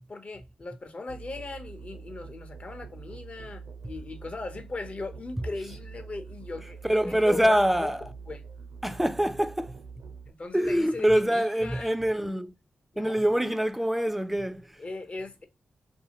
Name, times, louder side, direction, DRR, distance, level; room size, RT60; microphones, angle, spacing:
voice 1, 0.1-8.4 8.9-9.0 10.3-12.0 12.9-13.2 14.8-15.5, left 3 dB, 45° left, 0.7 m, -38 dB
Musical instrument, 1.1-10.3, right 5 dB, 75° right, 0.6 m, -45 dB
voice 2, 6.9-8.0 8.8-9.8 10.5-12.5 13.0-14.8, equal, 5° right, 0.4 m, -25 dB
2.6 x 2.5 x 2.8 m
supercardioid pair, 45°, 3 cm